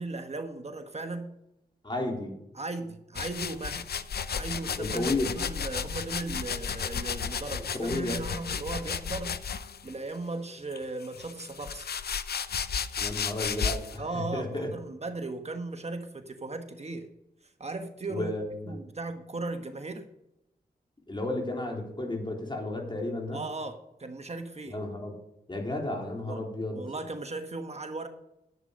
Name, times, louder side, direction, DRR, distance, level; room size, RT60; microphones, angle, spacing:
voice 1, 0.0-1.4 2.5-3.9 4.3-9.4 9.8-11.9 14.0-17.1 17.4-18.3 18.6-20.1 23.3-24.8 26.3-26.4 26.7-28.1, right 2 dB, 40° right, 6 dB, 1.3 m, -37 dB
voice 2, 1.8-2.4 4.8-5.4 7.6-8.2 13.0-14.7 18.1-18.7 21.1-23.4 24.7-25.1 25.5-26.8, left 2 dB, 30° left, 0 dB, 3.8 m, -32 dB
sound 1, 3.2-9.9 10.7-14.0, left 6 dB, 75° left, 0.7 m, -33 dB
11.0 x 8.1 x 5.3 m, 0.85 s
cardioid pair, 55°, 17 cm